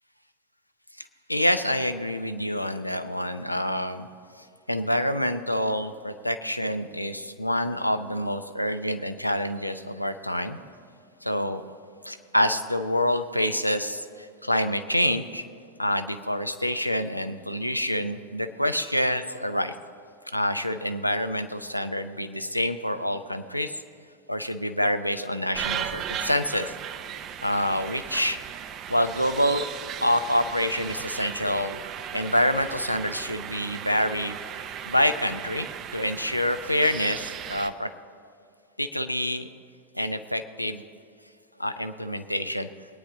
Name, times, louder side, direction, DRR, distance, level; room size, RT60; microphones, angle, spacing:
voice 1, 1.0-4.1 4.7-10.6 11.2-11.6 12.0-15.4 15.8-19.7 20.3-23.8 24.3-26.7 27.4-28.4 28.9-29.6 30.0-31.8 32.1-34.4 34.9-35.7 35.9-37.9 38.8-39.5 39.9-40.8 41.6-42.7, left 1 dB, 90° left, 9 dB, 0.6 m, -27 dB
sound 1, 25.5-37.7, right 9 dB, 35° right, 0.6 m, -36 dB
22.0 x 9.6 x 3.7 m, 2.3 s
figure-of-eight pair, 85°, 0 cm